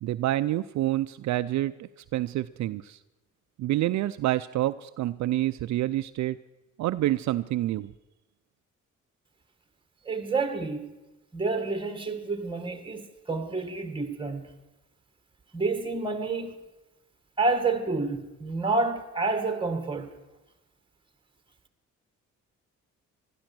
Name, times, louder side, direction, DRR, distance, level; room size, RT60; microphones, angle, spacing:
voice 1, 0.0-3.0 3.6-6.4 6.8-7.9, right 15 dB, 65° right, 0.5 m, -28 dB
voice 2, 10.1-10.9 11.3-14.5 15.5-16.6 17.4-20.1, right 3 dB, 15° right, 2.0 m, -29 dB
15.5 x 12.5 x 6.1 m
cardioid pair, 90°, 30 cm